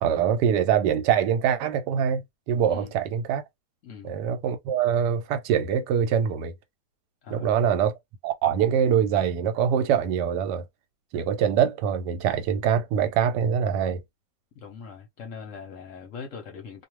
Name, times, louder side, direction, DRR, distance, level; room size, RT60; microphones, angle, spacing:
voice 1, 0.0-3.4 4.0-6.5 7.3-7.9 8.2-10.6 11.1-14.0, right 8 dB, 85° right, 1.2 m, -24 dB
voice 2, 3.8-4.1 7.2-7.6 14.5-16.8, left 6 dB, 60° left, 0.9 m, -41 dB
2.5 x 2.3 x 3.0 m
omnidirectional pair, 1.8 m